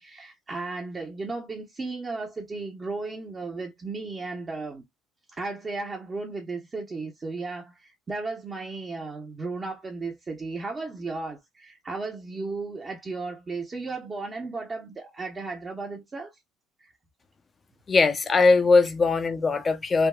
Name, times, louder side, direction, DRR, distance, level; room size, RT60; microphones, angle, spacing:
voice 1, 0.0-4.8 5.3-16.3 16.8-16.9, right 3 dB, 30° right, 0.8 m, -35 dB
voice 2, 17.9-20.1, left 4 dB, 30° left, 0.6 m, -20 dB
3.4 x 2.2 x 2.2 m
supercardioid pair, 90°, 0 cm